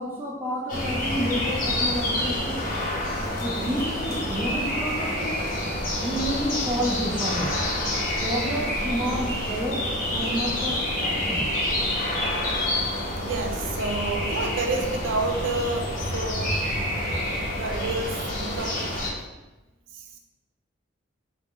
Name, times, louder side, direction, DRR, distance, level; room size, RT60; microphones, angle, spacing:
voice 1, 0.0-2.6 3.4-5.5 6.0-7.5 8.2-11.5, equal, 10° right, -4 dB, 0.5 m, -30 dB
sound 1, 0.7-19.1, left 1 dB, 45° left, 1.0 m, -28 dB
voice 2, 13.2-16.6 17.6-18.9 19.9-20.2, right 3 dB, 80° right, 3 dB, 0.5 m, -29 dB
4.3 x 2.5 x 3.6 m, 1.1 s
head